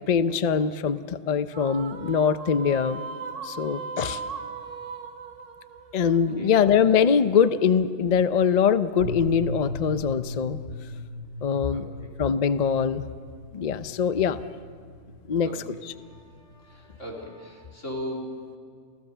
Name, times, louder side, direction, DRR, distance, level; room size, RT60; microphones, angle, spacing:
voice 1, 0.1-3.0 3.4-4.2 5.9-10.6 11.4-11.8 12.2-13.0 13.5-14.4 15.3-15.5, left 7 dB, 45° left, 13 dB, 0.6 m, -23 dB
sound 1, 1.5-7.0, right 5 dB, 90° right, 1.3 m, -38 dB
voice 2, 4.0-4.4 6.0-6.6 11.7-12.1 15.4-18.4, equal, 90° left, -2 dB, 4.2 m, -39 dB
sound 2, 9.0-17.0, left 1 dB, 45° right, 1.0 m, -38 dB
28.0 x 16.0 x 6.7 m, 2.2 s
omnidirectional pair, 1.2 m